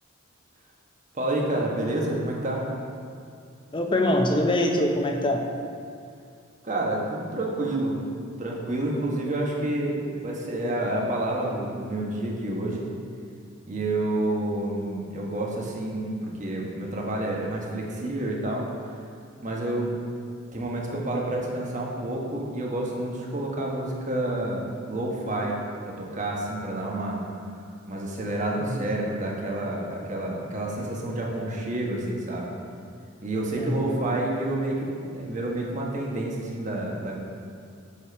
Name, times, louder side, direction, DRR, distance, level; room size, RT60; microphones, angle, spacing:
voice 1, 1.1-2.7 6.6-12.9 13.7-18.7 19.4-20.0 20.5-25.6 25.9-27.2 27.9-32.5 33.2-37.1, right 1 dB, 35° right, -2 dB, 1.3 m, -29 dB
voice 2, 3.7-5.5 28.6-28.9 33.6-34.0, left 1 dB, 25° left, 3 dB, 0.6 m, -24 dB
7.2 x 5.0 x 5.8 m, 2.3 s
head